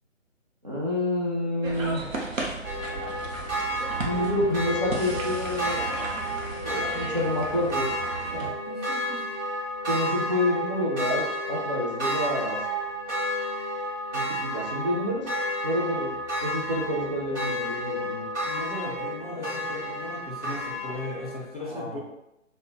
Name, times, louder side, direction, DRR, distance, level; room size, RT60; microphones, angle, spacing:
voice 1, 0.6-2.0 4.0-5.8 6.6-7.9 8.3-8.5 9.9-12.6 14.1-15.3 15.6-16.1 16.4-18.2 21.6-22.0, left 1 dB, 35° right, -6 dB, 0.4 m, -28 dB
sound 1, 1.6-8.5, right 2 dB, 85° right, 0.7 m, -35 dB
sound 2, 2.6-21.4, equal, 65° right, 1.0 m, -31 dB
voice 2, 8.4-9.3 18.4-22.0, left 2 dB, 30° left, -5 dB, 0.5 m, -37 dB
2.4 x 2.1 x 2.7 m, 0.85 s
figure-of-eight pair, 140°, 39 cm